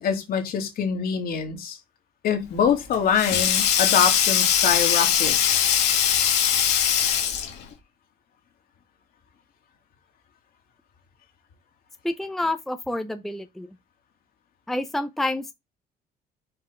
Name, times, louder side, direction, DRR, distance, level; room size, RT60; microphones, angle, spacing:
voice 1, 0.0-1.8 2.2-5.6, left 7 dB, 65° left, 2.5 m, -24 dB
Sink (filling or washing), 2.5-7.7, left 9 dB, 85° left, 2.1 m, -21 dB
voice 2, 12.0-13.8 14.7-15.5, left 2 dB, ahead, 0.6 m, -28 dB
7.2 x 4.7 x 3.6 m
cardioid pair, 110°, 17 cm